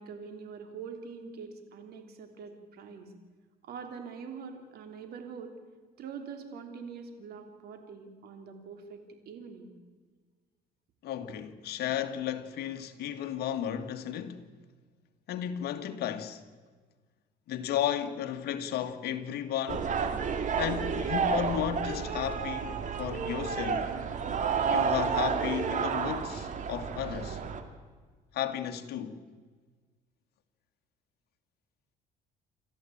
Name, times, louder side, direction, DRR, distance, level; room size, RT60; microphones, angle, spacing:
voice 1, 0.0-3.1 3.6-5.5 6.0-9.7, right 5 dB, 70° right, 3.4 m, -44 dB
voice 2, 11.0-14.4 15.3-16.4 17.5-19.9 20.6-23.9 24.7-27.4 28.3-29.2, left 10 dB, 70° left, 1.9 m, -34 dB
sound 1, 19.7-27.6, right 6 dB, 50° right, 2.3 m, -31 dB
28.0 x 13.5 x 8.7 m
cardioid pair, 110°, 17 cm